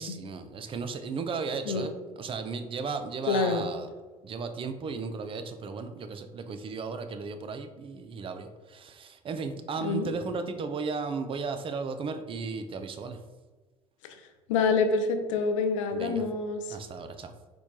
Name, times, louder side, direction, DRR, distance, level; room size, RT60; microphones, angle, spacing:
voice 1, 0.0-3.9 4.2-13.2 15.9-16.2 16.7-17.3, right 4 dB, 35° right, 8 dB, 0.4 m, -35 dB
voice 2, 3.3-3.6 9.8-10.1 14.5-16.8, left 4 dB, 85° left, 6 dB, 0.4 m, -27 dB
4.4 x 2.2 x 2.7 m, 1.3 s
hypercardioid pair, 65°, 16 cm